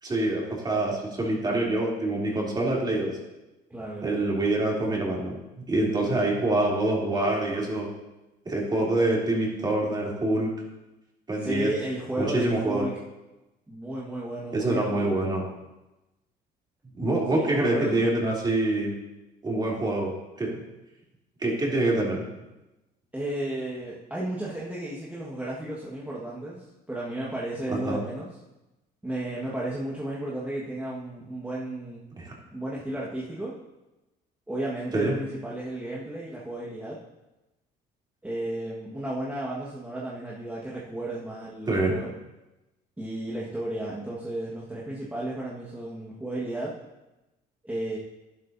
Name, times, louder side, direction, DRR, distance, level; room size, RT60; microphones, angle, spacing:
voice 1, 0.0-3.2 4.0-5.3 5.7-7.9 8.4-10.5 11.3-11.7 12.2-12.9 14.5-15.4 16.9-18.9 19.4-20.1 20.4-20.6 21.4-22.3 27.7-28.0 32.2-32.3 34.9-35.2 41.7-42.0, right 2 dB, 25° right, -3 dB, 3.1 m, -25 dB
voice 2, 3.7-4.2 11.4-13.0 13.7-15.1 17.3-18.0 23.1-28.3 29.0-32.0 32.5-33.6 34.5-37.0 38.2-42.1 43.0-46.8 47.6-48.0, right 1 dB, 10° right, -6 dB, 1.6 m, -33 dB
11.5 x 11.0 x 2.7 m, 1.0 s
cardioid pair, 110°, 17 cm